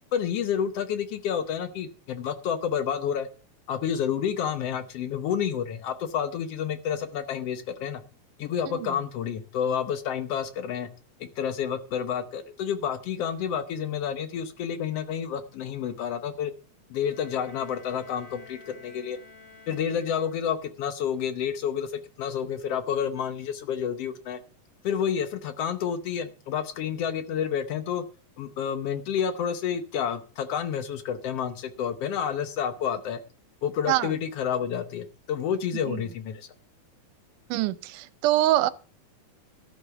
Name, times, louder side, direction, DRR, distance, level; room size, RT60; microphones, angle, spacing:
voice 1, 0.1-3.3 3.7-8.0 8.4-10.9 11.2-16.5 16.9-19.2 19.7-24.4 24.8-28.0 28.4-33.2 33.6-36.5, left 8 dB, 85° left, 1.3 m, -29 dB
Bowed string instrument, 17.0-20.8, left 4 dB, 40° left, 2.2 m, -51 dB
voice 2, 37.5-38.7, right 15 dB, 75° right, 2.0 m, -24 dB
13.5 x 6.7 x 6.7 m
omnidirectional pair, 4.1 m